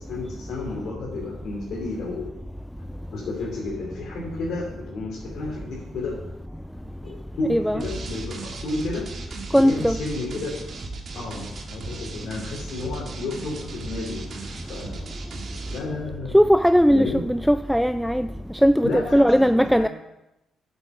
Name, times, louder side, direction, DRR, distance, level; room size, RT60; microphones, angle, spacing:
voice 1, 0.0-2.3 3.1-6.2 7.0-7.1 7.4-9.0 9.5-10.6 11.1-15.0 15.7-16.4 16.9-17.2 18.8-19.4 19.8-19.9, left 3 dB, 70° left, 2.8 m, -32 dB
voice 2, 7.5-7.8 9.5-10.0 16.3-18.3 18.6-19.9, equal, ahead, 0.4 m, -18 dB
sound 1, 7.8-15.8, right 3 dB, 60° right, 1.7 m, -37 dB
8.8 x 7.0 x 6.1 m
supercardioid pair, 55°, 0 cm